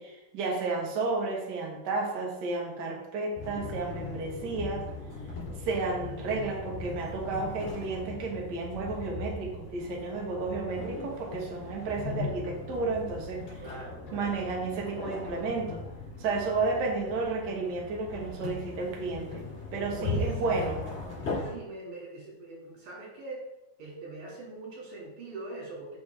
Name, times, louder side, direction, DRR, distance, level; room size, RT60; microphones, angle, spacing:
voice 1, 0.0-4.9 5.6-13.6 14.1-15.8 16.2-19.4 19.7-20.8, right 3 dB, 50° right, -1 dB, 1.2 m, -32 dB
sound 1, 3.3-21.5, left 3 dB, 55° left, 3.6 m, -39 dB
voice 2, 13.6-14.5 20.0-20.3 21.2-23.4 23.8-26.0, right 2 dB, 85° right, -3 dB, 3.8 m, -42 dB
7.0 x 6.1 x 3.4 m, 0.99 s
omnidirectional pair, 3.6 m